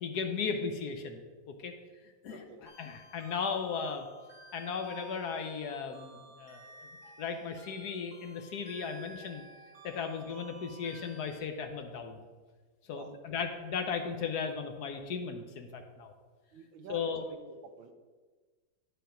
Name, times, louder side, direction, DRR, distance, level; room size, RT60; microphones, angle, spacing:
voice 1, 0.0-1.2 1.6-1.7 2.2-4.1 4.5-6.9 7.2-9.4 9.8-12.2 12.9-16.1 16.9-17.3, left 5 dB, 65° left, 6 dB, 1.1 m, -36 dB
voice 2, 2.3-2.6 12.9-13.1 16.5-17.4 17.8-17.9, right 5 dB, 80° right, 8 dB, 1.5 m, -48 dB
sound 1, 2.7-11.4, right 1 dB, 30° right, 2.8 m, -53 dB
11.0 x 4.6 x 5.0 m, 1.4 s
omnidirectional pair, 2.1 m